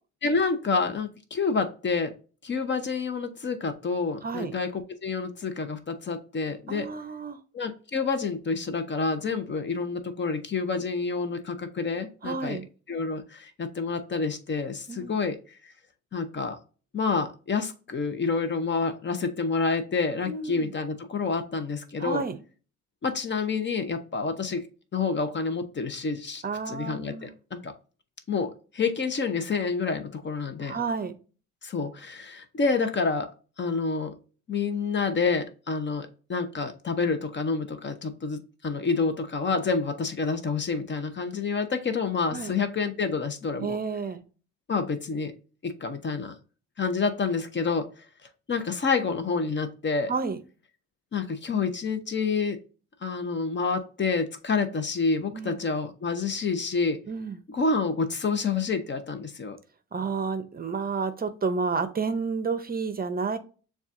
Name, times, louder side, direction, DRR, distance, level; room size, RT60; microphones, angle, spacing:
voice 1, 0.2-2.1 2.4-6.9 7.5-12.6 12.9-15.4 16.1-16.6 16.9-22.2 23.0-24.6 24.9-27.7 28.3-30.8 31.6-33.3 33.6-34.1 34.5-43.8 44.7-45.3 45.6-46.3 46.8-47.9 48.5-50.1 51.1-52.6 53.0-57.0 57.5-59.6, left 4 dB, 40° left, 9 dB, 0.7 m, -28 dB
voice 2, 4.2-4.5 6.7-7.4 12.2-12.7 14.9-15.2 20.3-20.7 22.0-22.4 26.4-27.3 30.6-31.1 42.3-42.5 43.6-44.2 50.1-50.4 55.3-55.6 57.1-57.4 59.9-63.4, right 4 dB, 30° right, 11 dB, 0.6 m, -30 dB
6.9 x 2.4 x 2.5 m, 0.37 s
cardioid pair, 90°, 30 cm